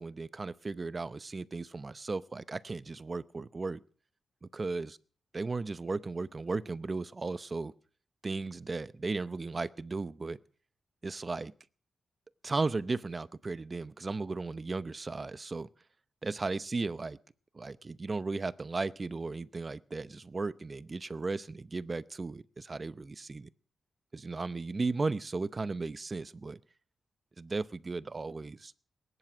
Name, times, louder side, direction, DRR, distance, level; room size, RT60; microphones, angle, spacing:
voice 1, 0.0-3.8 4.4-4.9 5.3-7.7 8.2-10.4 11.0-11.5 12.4-15.7 16.2-17.2 17.5-23.5 24.1-26.6 27.4-28.7, right 3 dB, 35° right, 17 dB, 0.7 m, -35 dB
20.0 x 11.0 x 6.2 m, 0.43 s
cardioid pair, 85°, 0 cm